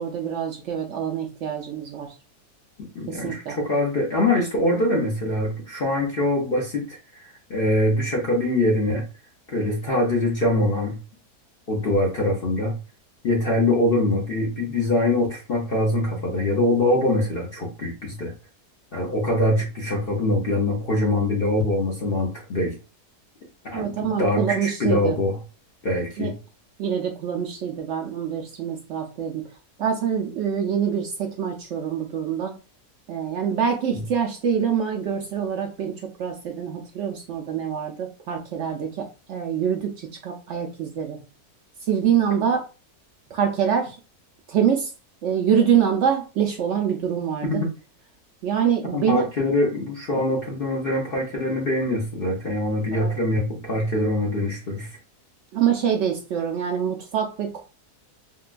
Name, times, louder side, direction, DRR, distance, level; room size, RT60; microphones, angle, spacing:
voice 1, 0.0-2.1 3.1-3.6 23.7-25.2 26.2-26.3 26.8-29.4 29.8-32.6 33.1-41.2 41.8-42.7 43.3-44.0 44.5-44.9 45.2-47.6 48.4-49.3 52.9-53.1 55.5-57.6, right 8 dB, 70° right, 3 dB, 0.6 m, -25 dB
voice 2, 2.8-9.0 9.5-11.0 11.7-12.8 13.2-18.3 18.9-22.8 23.6-25.4 25.8-26.3 47.4-47.7 48.9-54.9, left 1 dB, 55° left, -2 dB, 0.6 m, -23 dB
3.7 x 2.2 x 2.4 m, 0.33 s
omnidirectional pair, 1.7 m